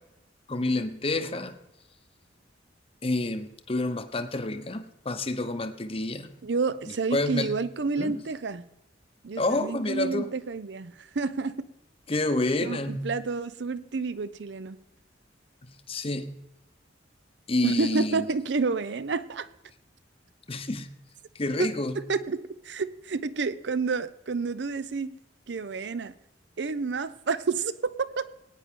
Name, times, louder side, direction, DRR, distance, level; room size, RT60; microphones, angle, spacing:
voice 1, 0.5-1.6 3.0-6.3 7.1-7.6 8.0-8.2 9.4-10.3 12.1-13.1 15.9-16.3 17.5-18.3 20.5-20.9 21.3-22.0, left 2 dB, 30° left, 8 dB, 0.8 m, -28 dB
voice 2, 6.4-8.7 9.2-11.7 12.6-14.8 17.6-19.5 21.6-21.7 22.0-25.1 25.5-26.1 26.6-28.3, right 4 dB, 65° right, 16 dB, 0.6 m, -30 dB
19.5 x 9.4 x 3.7 m, 0.92 s
head